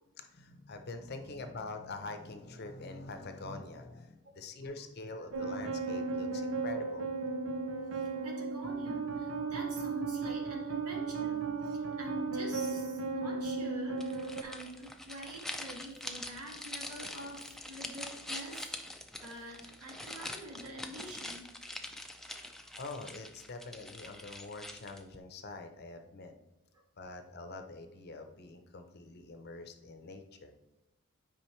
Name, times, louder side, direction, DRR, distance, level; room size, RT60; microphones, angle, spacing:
voice 1, 0.2-7.1 22.3-22.5 22.8-26.3 27.0-30.5, left 3 dB, 45° left, 7 dB, 0.6 m, -45 dB
creepy piano, 5.3-14.4, right 4 dB, 65° right, 0.7 m, -35 dB
voice 2, 7.9-18.9 19.2-21.5 22.3-22.7 27.0-27.1, right 1 dB, 90° right, 0 dB, 1.7 m, -46 dB
sound 1, 14.0-25.2, left 1 dB, ahead, 0.4 m, -44 dB
8.7 x 5.0 x 3.1 m, 1.0 s
head